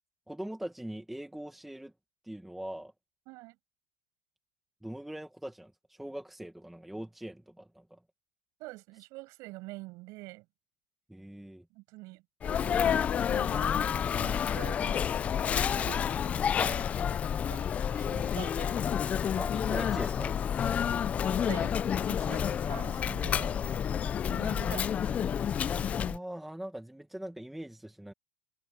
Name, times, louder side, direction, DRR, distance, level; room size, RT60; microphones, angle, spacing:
voice 1, 0.3-1.9 2.2-2.9 4.8-8.0 11.1-11.6 18.0-18.3 19.4-20.4 26.0-28.1, right 1 dB, ahead, 1.3 m, -42 dB
voice 2, 3.3-3.6 8.6-10.5 11.7-13.0 13.3-16.3 16.6-16.8 17.4-17.7 17.9-19.4 20.6-20.7 21.3-21.7 22.1-23.6 24.3-25.3, right 22 dB, 45° right, 6.4 m, -46 dB
Sneeze, 12.4-26.2, left 8 dB, 15° left, 0.3 m, -29 dB
supercardioid pair, 170°, 8 cm